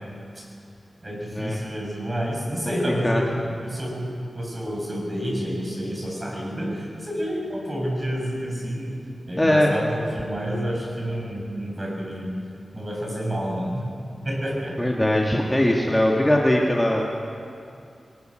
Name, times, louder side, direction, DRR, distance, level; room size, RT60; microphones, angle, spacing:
voice 1, 1.0-4.1 4.4-9.0 9.3-12.3 12.7-13.8 14.2-14.8, equal, 30° right, -2 dB, 6.9 m, -29 dB
voice 2, 2.7-3.2 9.4-9.7 14.8-17.1, left 1 dB, 15° left, -1 dB, 2.1 m, -21 dB
22.5 x 19.5 x 6.5 m, 2.5 s
wide cardioid pair, 65°, 0 cm